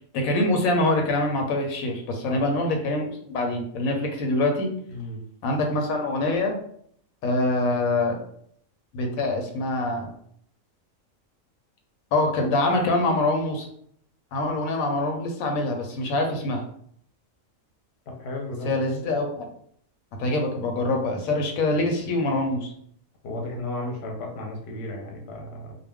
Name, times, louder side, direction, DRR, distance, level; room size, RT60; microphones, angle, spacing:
voice 1, 0.1-4.7 5.4-6.6 7.2-8.2 8.9-10.1 12.1-13.7 14.3-16.6 18.6-19.5 20.2-22.7, left 2 dB, 85° left, 3 dB, 1.0 m, -24 dB
voice 2, 4.9-5.2 18.1-18.7 23.2-25.7, left 1 dB, 60° left, 1 dB, 0.8 m, -34 dB
2.3 x 2.2 x 3.4 m, 0.64 s
omnidirectional pair, 1.4 m